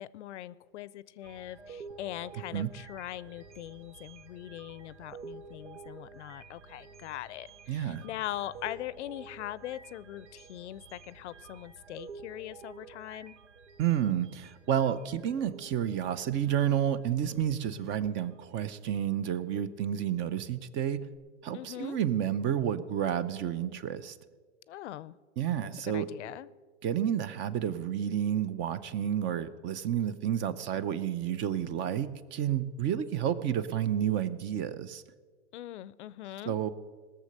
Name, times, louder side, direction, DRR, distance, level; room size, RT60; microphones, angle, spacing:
voice 1, 0.0-13.3 21.5-22.0 24.7-25.2 25.9-26.5 35.5-36.6, left 13 dB, 80° left, 19 dB, 0.6 m, -41 dB
sound 1, 1.2-18.4 18.8-19.1 21.1-21.2, right 4 dB, 90° right, 1.0 m, -50 dB
voice 2, 7.7-8.0 13.8-21.0 21.4-24.2 25.4-26.1 26.8-35.0 36.4-36.7, right 9 dB, 35° right, 15 dB, 0.6 m, -30 dB
18.5 x 6.9 x 6.6 m, 1.5 s
hypercardioid pair, 125°, 34 cm